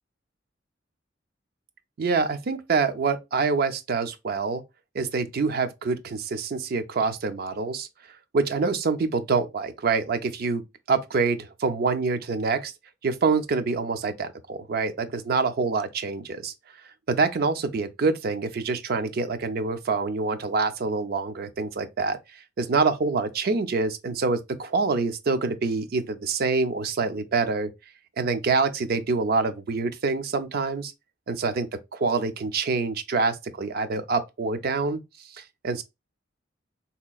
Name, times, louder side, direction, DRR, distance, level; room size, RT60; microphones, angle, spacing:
voice 1, 2.0-4.6 4.9-7.9 8.3-10.6 10.9-12.7 13.0-16.5 17.1-22.2 22.6-27.7 28.2-30.9 31.3-35.0 35.3-35.8, right 4 dB, 55° right, 0.4 m, -26 dB
4.0 x 2.8 x 2.2 m
head